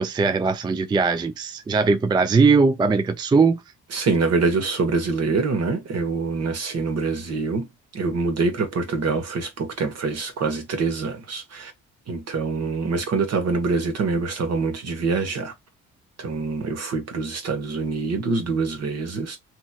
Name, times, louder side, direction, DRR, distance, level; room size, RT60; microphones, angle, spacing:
voice 1, 0.0-3.6, right 4 dB, 15° right, 0.3 m, -20 dB
voice 2, 3.9-7.7 7.9-11.7 12.1-15.5 16.2-19.4, right 4 dB, 55° right, 1.3 m, -25 dB
3.0 x 2.9 x 2.3 m
cardioid pair, 90°, 30 cm